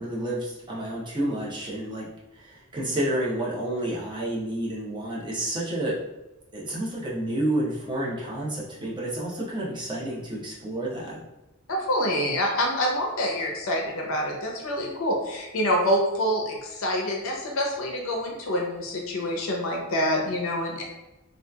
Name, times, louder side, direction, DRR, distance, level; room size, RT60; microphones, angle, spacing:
voice 1, 0.0-2.1 2.3-5.9 6.5-11.2, right 1 dB, 20° right, -6 dB, 0.6 m, -30 dB
voice 2, 11.7-20.8, equal, 65° left, 0 dB, 0.5 m, -26 dB
2.7 x 2.3 x 2.2 m, 0.98 s
head